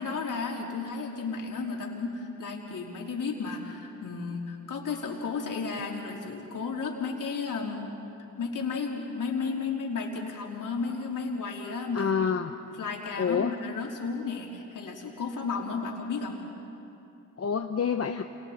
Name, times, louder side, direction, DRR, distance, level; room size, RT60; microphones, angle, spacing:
voice 1, 0.0-7.9 8.4-12.1 12.6-16.4, left 4 dB, 65° left, -1 dB, 3.9 m, -33 dB
voice 2, 11.9-12.6 13.2-13.6 17.4-18.2, left 6 dB, 45° left, 5 dB, 1.0 m, -27 dB
29.5 x 28.0 x 4.4 m, 2.8 s
supercardioid pair, 55°, 34 cm